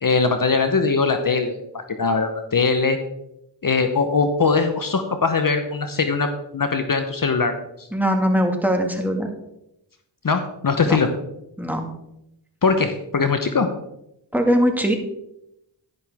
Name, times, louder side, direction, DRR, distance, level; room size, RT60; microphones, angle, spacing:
voice 1, 0.0-3.0 3.6-7.9 10.2-11.1 12.6-13.7, left 4 dB, 45° left, 7 dB, 1.0 m, -21 dB
voice 2, 7.9-9.3 10.8-11.0 11.6-11.8 14.3-15.0, equal, 5° right, 3 dB, 2.0 m, -20 dB
11.0 x 11.0 x 3.6 m, 0.83 s
cardioid pair, 65°, 45 cm